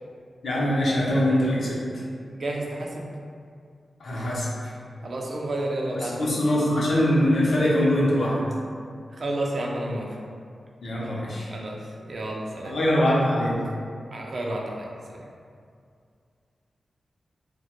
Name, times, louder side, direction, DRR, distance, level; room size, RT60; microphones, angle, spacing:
voice 1, 0.4-1.8 4.0-4.5 6.2-8.4 10.8-11.5 12.6-13.6, left 1 dB, 85° left, -6 dB, 0.5 m, -22 dB
voice 2, 2.3-3.1 5.0-6.4 9.1-10.2 11.0-11.1 11.5-12.7 14.1-15.2, right 1 dB, 60° right, -2 dB, 0.3 m, -31 dB
2.1 x 2.0 x 2.9 m, 2.3 s
wide cardioid pair, 105°, 0 cm